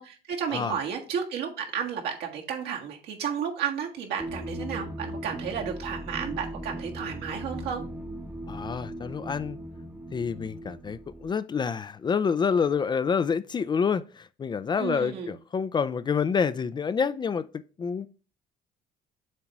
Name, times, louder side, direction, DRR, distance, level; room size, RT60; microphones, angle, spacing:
voice 1, 0.0-7.8 14.8-15.3, right 7 dB, 80° right, 1.6 m, -32 dB
sound 1, 4.2-11.3, right 1 dB, 10° right, 0.7 m, -38 dB
voice 2, 8.5-9.6 10.1-18.1, left 6 dB, 25° left, 0.3 m, -28 dB
7.4 x 3.0 x 4.6 m
cardioid pair, 110°, 17 cm